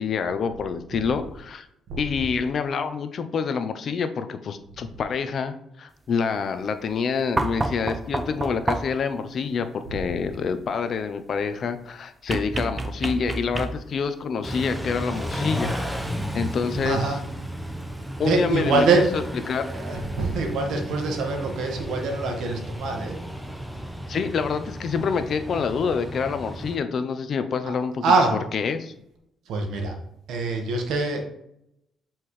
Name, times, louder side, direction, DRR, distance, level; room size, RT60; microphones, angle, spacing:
voice 1, 0.0-1.7 2.0-15.9 16.3-17.1 18.2-18.9 19.1-19.7 24.1-28.0 28.5-28.9, left 5 dB, 55° left, 9 dB, 0.7 m, -27 dB
sound 1, 7.4-9.1 12.3-14.0 15.6-15.7, right 2 dB, 25° right, 0.6 m, -29 dB
Car / Idling / Accelerating revving vroom, 14.4-26.8, equal, 5° right, 1.0 m, -33 dB
voice 2, 16.7-17.2 18.2-19.0 19.6-23.2 28.0-28.4 29.5-30.0 30.3-31.2, right 3 dB, 80° right, 3 dB, 1.4 m, -24 dB
7.6 x 4.4 x 3.2 m, 0.78 s
cardioid pair, 90°, 0 cm